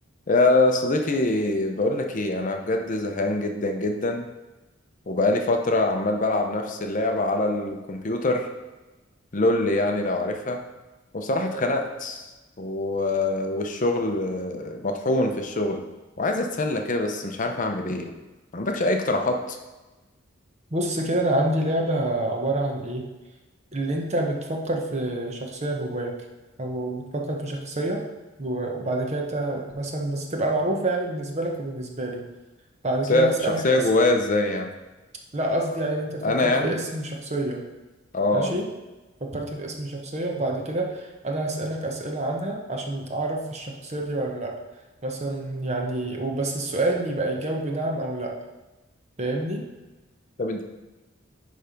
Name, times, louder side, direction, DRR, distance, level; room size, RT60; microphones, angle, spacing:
voice 1, 0.3-4.3 5.1-8.5 9.3-10.6 11.1-12.2 12.6-15.8 16.2-18.1 18.5-19.6 33.1-34.7 36.2-36.7 38.1-38.5 50.4-50.6, left 2 dB, 40° left, 4 dB, 0.7 m, -24 dB
voice 2, 20.7-23.1 23.7-26.1 26.6-28.0 28.4-32.2 32.8-33.8 35.3-37.7 38.3-38.7 39.2-44.5 45.0-48.3 49.2-49.6, right 1 dB, 35° right, 1 dB, 1.0 m, -27 dB
10.0 x 3.4 x 5.2 m, 1.1 s
head